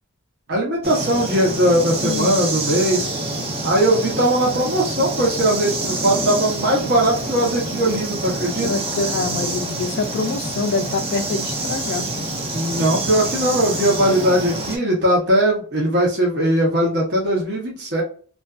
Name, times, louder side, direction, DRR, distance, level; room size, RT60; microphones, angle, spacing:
voice 1, 0.5-3.1 3.6-8.7 12.5-18.0, right 1 dB, 50° right, 0.8 m, -19 dB
sound 1, 0.8-14.8, right 2 dB, 25° right, 0.5 m, -27 dB
voice 2, 2.0-2.4 8.6-12.2, left 4 dB, 50° left, 0.3 m, -25 dB
2.5 x 2.3 x 2.3 m
head